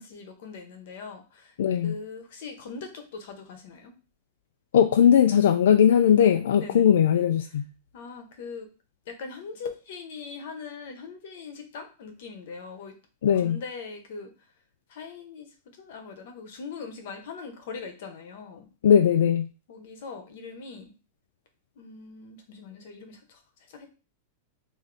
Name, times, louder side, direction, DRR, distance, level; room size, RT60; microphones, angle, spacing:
voice 1, 0.0-1.5 1.8-3.9 6.5-6.8 7.9-8.7 9.1-12.9 13.4-14.3 14.9-18.7 19.7-20.9 21.8-23.4 23.7-23.9, left 5 dB, 50° left, 6 dB, 0.8 m, -41 dB
voice 2, 1.6-2.0 4.7-7.7 13.2-13.6 18.8-19.5, left 8 dB, 90° left, 8 dB, 0.3 m, -19 dB
3.4 x 2.6 x 3.8 m, 0.33 s
supercardioid pair, 180°, 0 cm